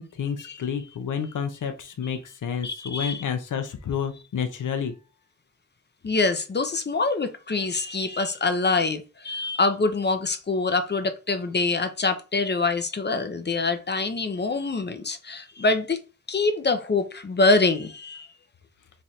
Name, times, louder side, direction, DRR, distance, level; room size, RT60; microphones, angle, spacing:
voice 1, 0.0-4.9, left 7 dB, 80° left, 0.6 m, -30 dB
voice 2, 2.6-3.2 6.0-16.0 16.3-18.3, left 3 dB, 35° left, 0.5 m, -25 dB
3.2 x 2.5 x 4.2 m
wide cardioid pair, 80°, 31 cm